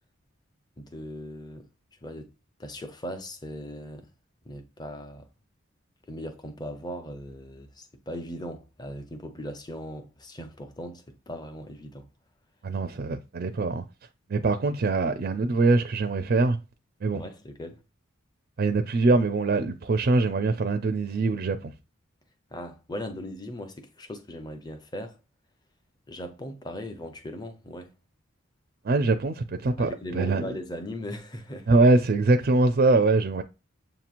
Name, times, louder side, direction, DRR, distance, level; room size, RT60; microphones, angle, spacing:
voice 1, 0.8-1.6 2.0-2.3 2.6-4.1 4.4-5.3 6.1-12.0 17.1-17.8 22.5-25.2 26.1-27.9 29.8-31.8, equal, 20° left, 0.6 m, -38 dB
voice 2, 12.6-13.8 14.3-16.6 17.0-17.2 18.6-21.7 28.8-30.6 31.7-33.4, right 3 dB, 45° right, 0.4 m, -23 dB
7.3 x 2.9 x 2.4 m
head